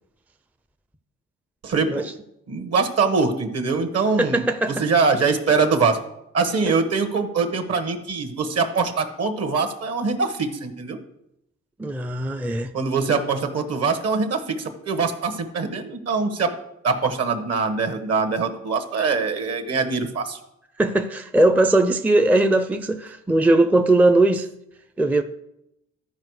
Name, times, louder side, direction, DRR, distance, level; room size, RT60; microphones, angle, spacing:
voice 1, 1.6-2.1 2.5-6.0 6.3-11.0 12.7-16.5 16.8-20.4, right 4 dB, 55° right, 1.4 m, -23 dB
voice 2, 4.2-4.8 6.7-6.8 11.8-12.7 20.8-24.5 25.0-25.2, right 2 dB, 5° right, 0.4 m, -19 dB
13.0 x 4.8 x 4.8 m
cardioid pair, 90°, 30 cm